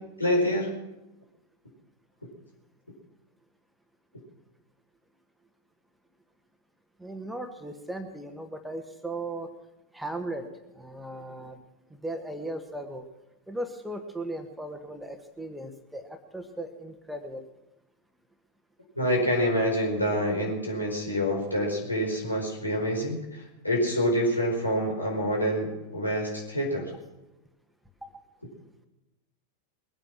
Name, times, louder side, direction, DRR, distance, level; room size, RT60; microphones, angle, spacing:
voice 1, 0.2-0.7 18.9-26.9, equal, 85° left, -2 dB, 5.0 m, -27 dB
voice 2, 7.0-9.5 9.9-10.5 10.8-11.6 12.0-13.0 13.5-17.4 28.0-28.1, right 1 dB, 5° right, 7 dB, 1.5 m, -37 dB
21.5 x 9.1 x 6.1 m, 0.97 s
figure-of-eight pair, 90°, 0 cm